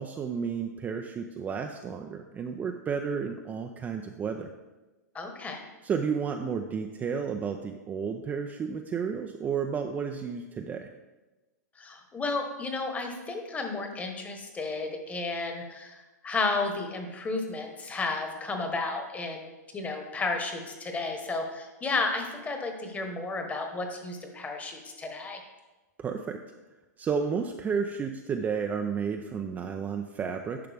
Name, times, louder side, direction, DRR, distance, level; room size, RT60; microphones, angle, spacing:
voice 1, 0.0-4.5 5.8-10.9 26.0-26.4 27.0-30.6, right 6 dB, 20° right, 4 dB, 0.4 m, -32 dB
voice 2, 5.1-5.6 11.8-25.4, left 3 dB, 15° left, 4 dB, 1.2 m, -33 dB
10.5 x 5.8 x 3.5 m, 1.1 s
hypercardioid pair, 125°, 9 cm